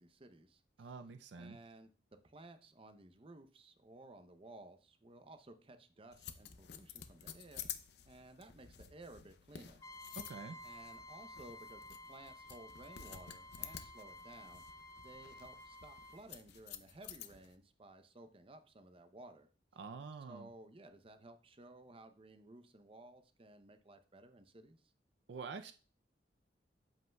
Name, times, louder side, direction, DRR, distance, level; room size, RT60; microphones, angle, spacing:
voice 1, 0.0-0.9 1.3-1.9 2.2-7.7 8.1-10.2 10.6-14.6 15.0-19.5 20.3-24.8, right 2 dB, 30° right, 0.6 m, -57 dB
voice 2, 0.8-1.6 10.1-10.6 19.8-20.5 25.3-25.7, right 4 dB, 70° right, 0.4 m, -47 dB
sound 1, 6.1-17.5, left 9 dB, 65° left, 0.6 m, -52 dB
Trumpet, 9.8-16.2, left 1 dB, 20° left, 0.5 m, -53 dB
13.0 x 5.4 x 2.3 m
head